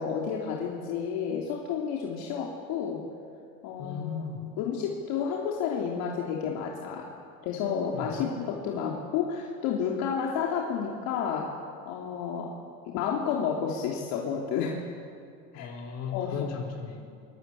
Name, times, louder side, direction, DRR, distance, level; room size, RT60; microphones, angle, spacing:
voice 1, 0.0-3.0 3.6-4.2 4.6-7.1 7.4-11.5 11.9-12.5 12.9-14.8 15.5-15.7 16.1-16.5, left 7 dB, 55° left, -2 dB, 3.5 m, -31 dB
voice 2, 3.8-4.5 7.9-8.3 15.5-17.0, left 7 dB, 35° left, 1 dB, 5.6 m, -36 dB
25.0 x 24.0 x 8.7 m, 2.3 s
cardioid pair, 155°, 42 cm